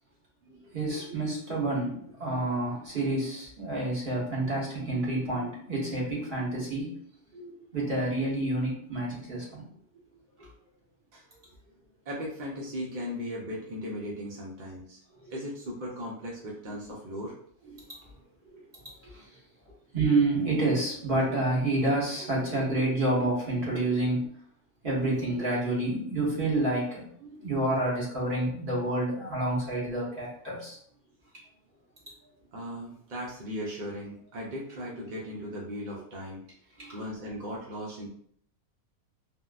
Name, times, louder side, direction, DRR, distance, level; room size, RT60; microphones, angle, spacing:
voice 1, 0.7-6.9 7.3-9.6 15.2-15.3 19.1-19.3 19.9-24.3 24.8-30.8 35.0-35.1 36.8-37.0, right 2 dB, 40° right, -5 dB, 1.2 m, -29 dB
voice 2, 12.1-15.0 15.3-17.4 19.7-19.8 32.5-36.4 36.9-38.1, equal, 55° right, -4 dB, 0.5 m, -37 dB
3.6 x 2.1 x 2.4 m, 0.63 s
omnidirectional pair, 1.5 m